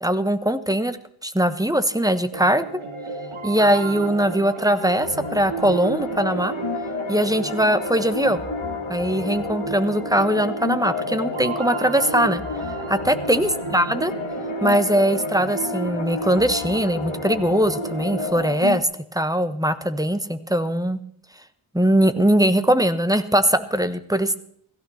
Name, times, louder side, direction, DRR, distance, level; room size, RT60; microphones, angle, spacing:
voice 1, 0.0-1.0 1.2-2.7 3.4-6.5 7.1-8.4 8.9-12.4 12.9-14.1 14.6-21.0 21.7-24.4, right 1 dB, 5° right, 12 dB, 1.2 m, -21 dB
sound 1, 2.3-18.3, right 3 dB, 75° right, 2.3 m, -32 dB
sound 2, 5.0-18.8, left 5 dB, 70° left, 2.0 m, -32 dB
16.5 x 15.5 x 4.3 m, 0.65 s
wide cardioid pair, 65°, 50 cm